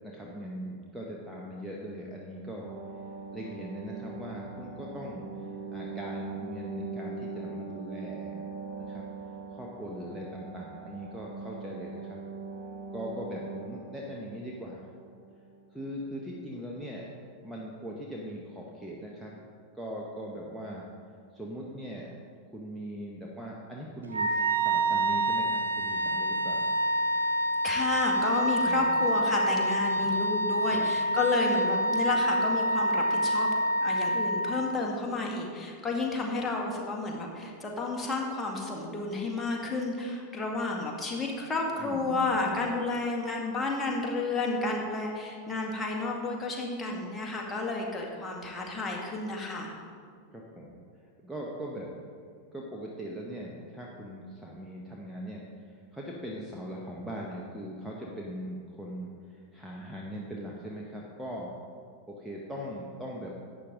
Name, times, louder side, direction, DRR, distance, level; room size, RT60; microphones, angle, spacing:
voice 1, 0.0-2.7 3.3-8.4 8.8-9.0 9.5-12.2 12.9-14.9 15.7-17.1 17.4-19.4 19.7-20.9 21.3-22.2 22.5-26.7 28.6-29.0 29.9-30.2 30.7-31.1 41.8-42.7 50.3-50.8 51.2-51.9 52.5-61.5 62.1-63.3, equal, 5° right, -3 dB, 1.1 m, -40 dB
sound 1, 2.6-15.7 16.0-16.1, right 4 dB, 35° right, 1.5 m, -41 dB
Wind instrument woodwind instrument, 24.1-34.9, right 1 dB, 75° right, 0.7 m, -27 dB
voice 2, 27.6-33.5 33.8-49.7, left 3 dB, 15° left, 0 dB, 1.8 m, -31 dB
11.5 x 8.7 x 3.8 m, 2.2 s
figure-of-eight pair, 90°, 0 cm